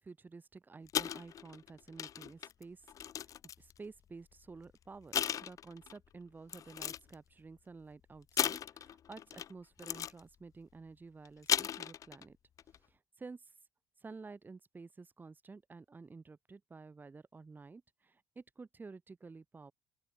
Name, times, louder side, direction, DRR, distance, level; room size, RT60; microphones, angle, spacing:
voice 1, 0.0-12.4 12.7-13.5 14.0-19.7, right 4 dB, 25° right, 2.8 m, -52 dB
sound 1, 0.9-3.8 4.5-4.7 5.1-6.0 6.5-7.1 8.4-9.5 9.8-10.2 11.2-12.2 12.6-12.8, left 9 dB, 45° left, 0.4 m, -36 dB
open air
supercardioid pair, 90°, 8 cm